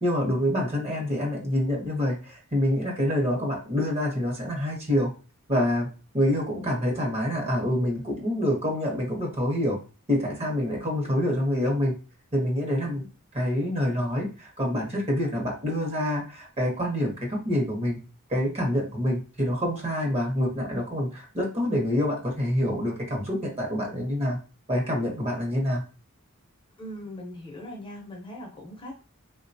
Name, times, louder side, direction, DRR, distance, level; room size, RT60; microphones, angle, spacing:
voice 1, 0.0-5.1 5.5-5.9 6.1-9.8 10.1-12.0 12.3-13.1 13.3-18.0 18.3-24.4 24.7-25.8, left 1 dB, 30° right, -1 dB, 0.9 m, -26 dB
voice 2, 26.8-28.9, left 1 dB, 25° left, 0 dB, 0.7 m, -40 dB
3.6 x 2.2 x 2.6 m, 0.34 s
head